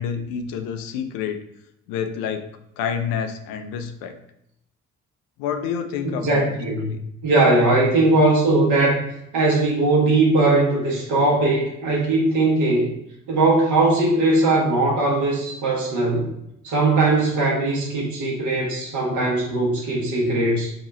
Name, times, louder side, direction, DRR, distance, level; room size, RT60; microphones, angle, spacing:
voice 1, 0.0-1.4 1.9-2.5 2.8-4.1 5.4-6.5 6.9-7.0, left 7 dB, 70° left, 7 dB, 0.5 m, -28 dB
voice 2, 6.2-6.9 7.2-9.0 9.3-12.9 13.3-16.3 16.6-20.7, right 2 dB, 55° right, -2 dB, 1.1 m, -19 dB
2.8 x 2.3 x 4.0 m, 0.80 s
hypercardioid pair, 50°, 35 cm